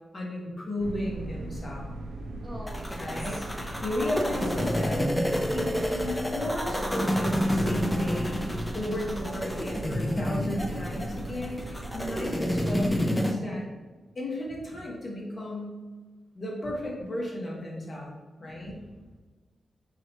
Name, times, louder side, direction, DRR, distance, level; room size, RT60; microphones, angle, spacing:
voice 1, 0.1-1.9 3.0-5.0 5.5-8.5 8.7-13.6 14.1-15.8 16.3-18.1 18.4-18.8, left 1 dB, 40° left, -3 dB, 0.9 m, -34 dB
sound 1, 0.8-12.9, right 2 dB, 70° right, 0.4 m, -39 dB
voice 2, 2.4-3.5 18.4-19.2, equal, 10° right, -4 dB, 0.9 m, -45 dB
sound 2, 2.7-13.3, equal, 10° left, 0.4 m, -29 dB
2.8 x 2.8 x 4.3 m, 1.3 s
cardioid pair, 95°, 0 cm